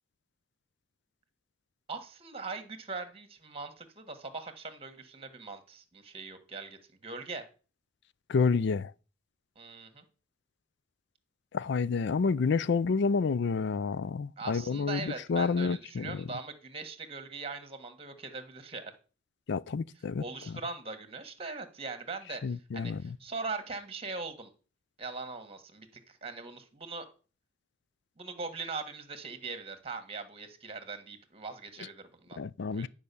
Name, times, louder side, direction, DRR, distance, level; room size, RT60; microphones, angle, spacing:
voice 1, 1.9-7.4 9.5-10.0 14.4-18.9 20.2-24.5 25.0-27.0 28.2-32.4 32.7-32.9, right 4 dB, 30° right, 1.6 m, -41 dB
voice 2, 8.3-8.9 11.5-16.3 19.5-20.2 22.4-23.2 32.4-32.9, left 5 dB, 65° left, 0.4 m, -29 dB
11.0 x 5.1 x 6.9 m
head